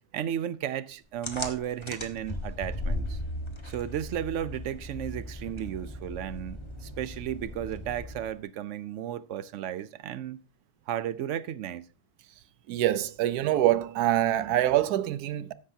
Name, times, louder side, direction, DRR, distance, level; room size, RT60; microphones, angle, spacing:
voice 1, 0.1-3.2 3.6-10.4 10.9-11.9, right 10 dB, 65° right, 0.8 m, -34 dB
sound 1, 1.2-8.4, left 1 dB, 20° left, 1.2 m, -37 dB
voice 2, 12.7-15.5, right 13 dB, 85° right, 1.2 m, -25 dB
13.5 x 10.0 x 2.7 m
omnidirectional pair, 1.6 m